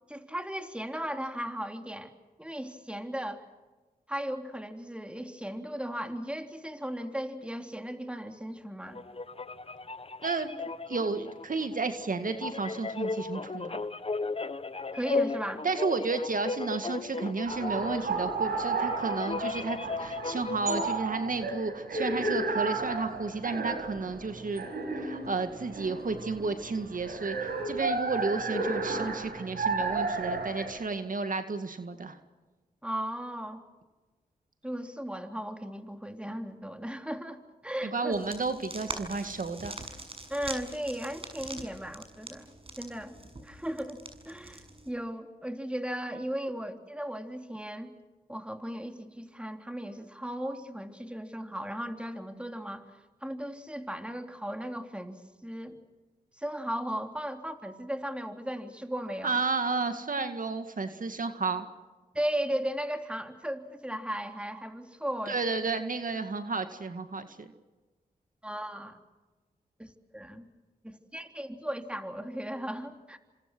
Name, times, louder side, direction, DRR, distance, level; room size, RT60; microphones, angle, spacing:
voice 1, 0.1-2.1 2.4-3.5 4.1-9.0 14.9-15.7 32.8-33.6 34.6-38.2 40.3-43.2 43.4-47.9 48.3-52.9 53.2-55.8 56.4-59.4 62.1-65.4 68.4-69.0 69.8-70.5 70.8-73.2, equal, 5° right, 5 dB, 3.5 m, -36 dB
sound 1, 8.9-21.0, left 3 dB, 35° left, 1.2 m, -35 dB
voice 2, 10.9-13.8 15.6-24.6 24.9-32.2 37.9-39.7 59.2-61.7 65.3-67.5, right 4 dB, 55° right, 8 dB, 2.0 m, -32 dB
sound 2, 17.4-30.7, right 3 dB, 85° right, 5.9 m, -33 dB
sound 3, 38.1-44.9, right 2 dB, 35° right, 6.8 m, -44 dB
28.0 x 26.5 x 6.2 m, 1.2 s
cardioid pair, 45°, 16 cm